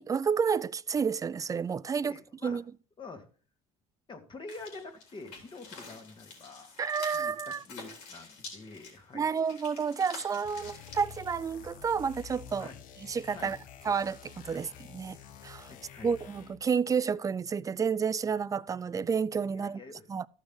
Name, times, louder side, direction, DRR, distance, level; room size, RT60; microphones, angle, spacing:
voice 1, 0.0-2.6 6.8-7.6 9.1-12.7 13.1-13.6 13.8-15.2 15.4-15.7 16.0-19.8 20.1-20.3, right 6 dB, 25° right, 0.4 m, -30 dB
voice 2, 1.9-2.6 3.0-3.3 4.1-6.7 7.1-9.3 12.6-12.8 13.3-13.6 14.5-14.6 15.7-16.2 19.5-20.1, left 3 dB, 35° left, 2.1 m, -47 dB
sound 1, 4.5-11.0, left 4 dB, 90° left, 3.5 m, -48 dB
sound 2, 10.4-16.7, left 9 dB, 65° left, 1.1 m, -49 dB
13.5 x 6.1 x 3.7 m
supercardioid pair, 95°, 15 cm